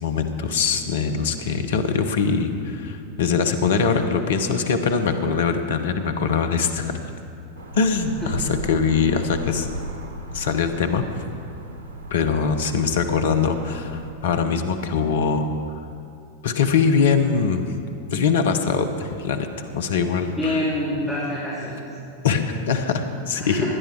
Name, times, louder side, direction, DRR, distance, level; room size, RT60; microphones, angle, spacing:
voice 1, 0.0-6.9 7.7-9.7 10.3-11.0 12.1-15.5 16.4-17.7 18.1-19.5 19.7-20.6 22.2-23.7, left 5 dB, 60° left, 7 dB, 1.1 m, -22 dB
sound 1, 7.6-14.1, right 1 dB, 65° right, 1.2 m, -36 dB
voice 2, 20.4-21.8 23.3-23.7, left 1 dB, ahead, -9 dB, 2.8 m, -26 dB
17.5 x 10.5 x 4.7 m, 2.5 s
figure-of-eight pair, 90°, 0 cm